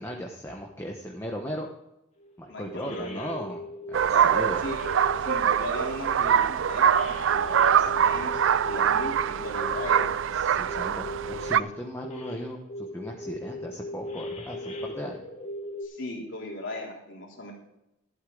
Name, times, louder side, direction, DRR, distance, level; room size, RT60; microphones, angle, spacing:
voice 1, 0.0-1.7 2.4-3.6 3.9-4.7 7.8-7.9 10.3-15.2, equal, 15° left, 1 dB, 1.1 m, -37 dB
sound 1, 2.2-2.3 2.6-4.0 4.5-5.4 5.8-10.1 10.7-11.6 12.0-12.4 12.7-15.9, left 1 dB, 35° left, 2.1 m, -38 dB
voice 2, 2.5-3.5 4.0-4.8 5.2-10.1 15.8-17.5, left 1 dB, 70° left, -1 dB, 3.3 m, -38 dB
sound 2, 3.9-11.6, right 8 dB, 70° right, 0.4 m, -24 dB
12.5 x 11.5 x 3.9 m, 0.87 s
head